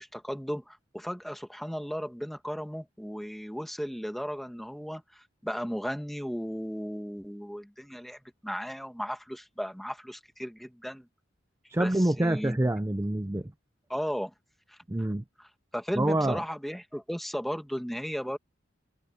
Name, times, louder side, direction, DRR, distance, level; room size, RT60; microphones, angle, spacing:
voice 1, 0.0-11.1 11.8-12.6 13.9-14.3 14.7-14.8 15.4-18.4, equal, ahead, 1.8 m, -35 dB
voice 2, 11.7-13.5 14.9-15.2 16.0-16.4, right 1 dB, 15° right, 0.5 m, -26 dB
head